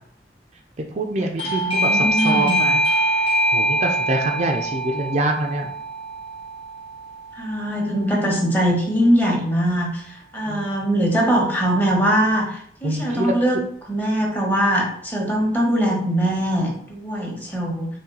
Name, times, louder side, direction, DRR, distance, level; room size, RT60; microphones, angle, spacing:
voice 1, 0.9-2.8 3.5-5.7 10.5-10.7 12.8-13.4, right 1 dB, 40° right, 3 dB, 0.4 m, -25 dB
Doorbell, 1.4-7.9, right 1 dB, 35° left, 1.0 m, -23 dB
voice 2, 1.4-2.6 7.4-10.0 10.3-13.6 13.9-17.9, equal, 10° left, -2 dB, 1.1 m, -21 dB
4.4 x 3.2 x 3.8 m, 0.64 s
head